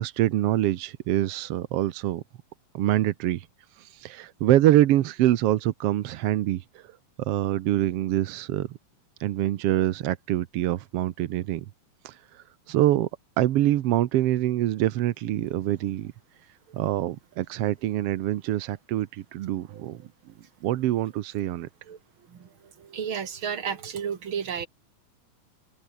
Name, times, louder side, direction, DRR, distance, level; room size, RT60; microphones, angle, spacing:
voice 1, 0.0-2.2 2.7-3.4 4.0-6.6 7.2-8.7 9.2-11.6 12.0-12.1 12.7-13.1 13.4-16.1 16.7-20.0 20.6-21.7, right 13 dB, 85° right, 1.3 m, -25 dB
voice 2, 22.8-24.7, right 7 dB, 40° right, 2.6 m, -32 dB
omnidirectional pair, 3.9 m